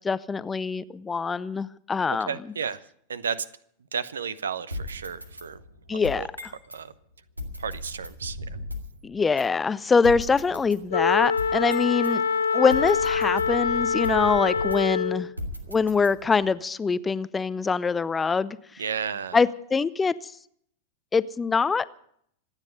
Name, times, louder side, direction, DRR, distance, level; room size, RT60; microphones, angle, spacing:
voice 1, 0.0-2.3 5.9-6.2 9.0-12.2 12.5-15.3 15.7-18.6 19.3-20.3 21.1-21.9, left 5 dB, 15° left, 0.5 m, -24 dB
voice 2, 2.1-2.8 3.1-3.5 3.9-5.6 5.9-6.3 6.7-6.9 7.6-8.6 18.8-19.4, right 7 dB, 70° right, 0.8 m, -33 dB
sound 1, 4.7-6.8 7.4-9.0 9.4-9.5 10.0-12.1 12.7-15.0 15.4-16.5, left 1 dB, 85° right, 2.1 m, -37 dB
Wind instrument woodwind instrument, 10.9-15.3, left 5 dB, 70° left, 1.5 m, -25 dB
25.5 x 9.9 x 5.4 m
figure-of-eight pair, 90°, 0 cm